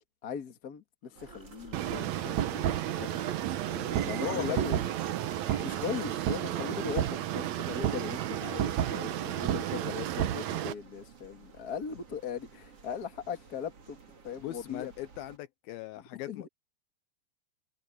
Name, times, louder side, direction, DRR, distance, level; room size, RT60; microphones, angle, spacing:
voice 1, 0.2-3.1 3.7-4.8 5.6-14.0 14.2-14.9 16.1-16.5, left 6 dB, 35° left, 1.5 m, -39 dB
sound 1, 1.0-2.6 3.0-3.9 4.2-5.0 5.4-6.3, left 2 dB, 10° left, 4.0 m, -56 dB
Footsteps on a wet sidewalk in Berlin, 1.1-15.4, right 5 dB, 40° right, 3.4 m, -54 dB
sound 2, 1.7-10.7, right 11 dB, 90° right, 1.5 m, -31 dB
voice 2, 3.8-4.6 14.4-16.5, left 15 dB, 80° left, 2.3 m, -41 dB
omnidirectional pair, 4.7 m